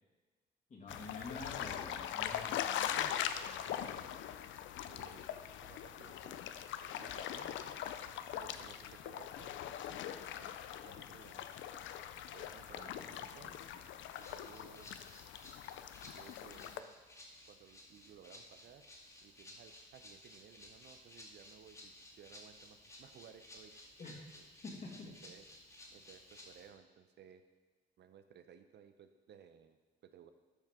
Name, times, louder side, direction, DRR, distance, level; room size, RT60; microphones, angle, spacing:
voice 1, 0.7-2.7 12.6-13.8 24.0-24.1 24.6-25.1, left 3 dB, 40° left, -1 dB, 2.0 m, -49 dB
sound 1, 0.9-16.8, left 10 dB, 75° left, 0.5 m, -42 dB
voice 2, 2.8-4.1 4.9-6.4 7.0-7.8 8.3-10.0 10.3-11.5 12.2-13.6 14.2-14.9 16.0-16.9 17.5-18.9 19.2-23.7 24.3-24.5 25.1-25.4 25.9-27.4 28.0-30.3, right 8 dB, 60° right, 9 dB, 0.6 m, -59 dB
Rattle (instrument), 14.1-26.7, left 1 dB, 15° left, 2.1 m, -57 dB
12.5 x 4.6 x 3.6 m, 1.3 s
cardioid pair, 90°, 20 cm